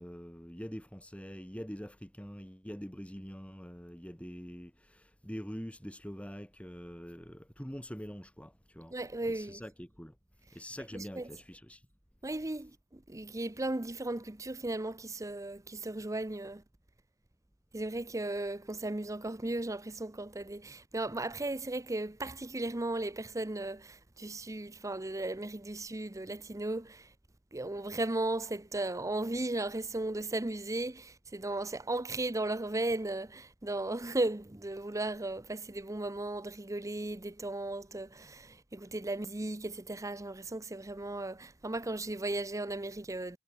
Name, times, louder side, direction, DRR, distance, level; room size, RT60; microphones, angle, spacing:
voice 1, 0.0-9.0 9.3-10.2 10.5-11.9, equal, 5° left, 3.7 m, -44 dB
voice 2, 8.9-9.6 10.9-11.3 12.2-16.6 17.7-27.1 27.5-43.4, right 2 dB, 15° right, 0.7 m, -36 dB
head